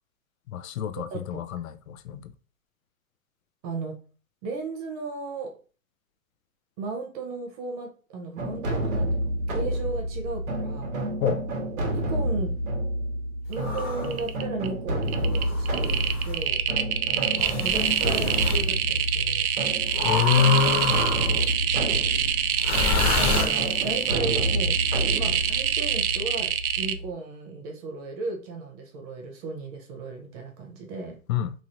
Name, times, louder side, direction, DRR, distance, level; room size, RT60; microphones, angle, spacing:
voice 1, 0.5-2.3 11.2-11.4 17.4-17.5 20.0-21.0 31.3-31.5, left 8 dB, 75° left, 0.5 m, -25 dB
voice 2, 1.1-1.4 3.6-4.0 4.4-5.5 6.8-10.9 11.9-12.5 13.5-16.6 17.6-19.7 21.3-21.4 23.2-24.8 25.1-31.2, right 3 dB, 30° right, 0.6 m, -35 dB
sound 1, 8.4-27.1, right 1 dB, 70° right, 1.2 m, -29 dB
sound 2, 13.5-14.2 15.2-16.4 17.4-18.6 19.9-21.5 22.6-24.0, left 3 dB, 45° left, 1.1 m, -29 dB
sound 3, 13.5-13.8 14.0-14.7 15.0-26.9, right 10 dB, 85° right, 0.5 m, -26 dB
3.0 x 2.8 x 2.5 m
hypercardioid pair, 135°, 42 cm